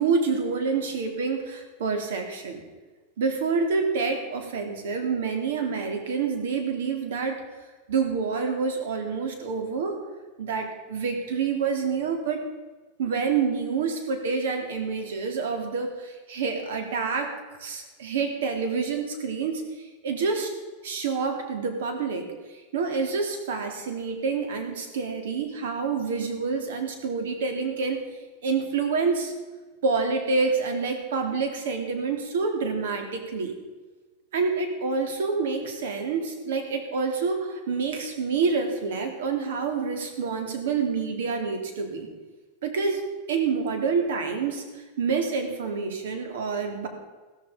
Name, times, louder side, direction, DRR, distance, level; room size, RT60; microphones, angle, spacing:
voice 1, 0.0-2.6 3.2-7.4 7.9-10.0 10.4-12.4 13.0-20.5 20.8-28.0 28.4-29.3 29.8-33.5 34.3-42.1 42.6-46.9, right 5 dB, 90° right, 5 dB, 3.4 m, -27 dB
15.5 x 14.5 x 5.3 m, 1.3 s
supercardioid pair, 165°, 0 cm